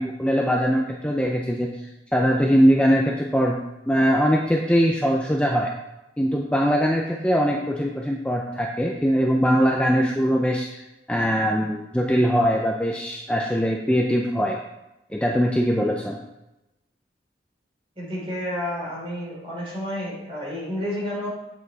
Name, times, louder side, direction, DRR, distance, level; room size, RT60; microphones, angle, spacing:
voice 1, 0.0-3.6 3.9-5.7 6.2-14.6 15.1-16.2, equal, 5° left, 0 dB, 0.6 m, -21 dB
voice 2, 18.0-21.3, left 1 dB, 30° right, -5 dB, 3.6 m, -30 dB
8.3 x 6.9 x 4.1 m, 0.93 s
head